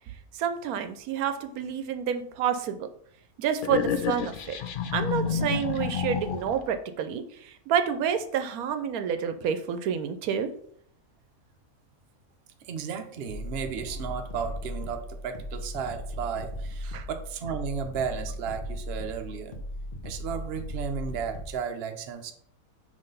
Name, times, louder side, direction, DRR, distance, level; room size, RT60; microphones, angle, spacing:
voice 1, 0.3-2.9 3.4-4.6 4.9-10.5 16.9-17.1, right 8 dB, 85° right, 9 dB, 1.1 m, -29 dB
sound 1, 3.6-6.7, left 7 dB, 70° left, 0.5 m, -29 dB
voice 2, 12.6-19.6 20.0-22.3, right 6 dB, 55° right, 6 dB, 0.8 m, -34 dB
sound 2, 13.3-21.6, equal, 40° left, 0.9 m, -37 dB
5.7 x 3.2 x 5.3 m, 0.65 s
omnidirectional pair, 1.5 m